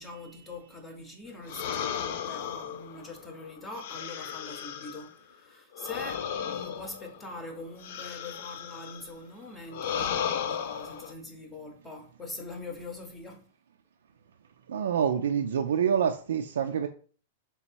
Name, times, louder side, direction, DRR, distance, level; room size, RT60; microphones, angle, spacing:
voice 1, 0.0-13.4, left 2 dB, 15° left, 0.7 m, -43 dB
sound 1, 1.5-5.1 5.7-9.1 9.7-11.1, left 8 dB, 60° left, 0.4 m, -35 dB
voice 2, 14.7-16.9, right 8 dB, 90° right, 0.3 m, -26 dB
3.4 x 3.0 x 4.4 m
supercardioid pair, 145°, 0 cm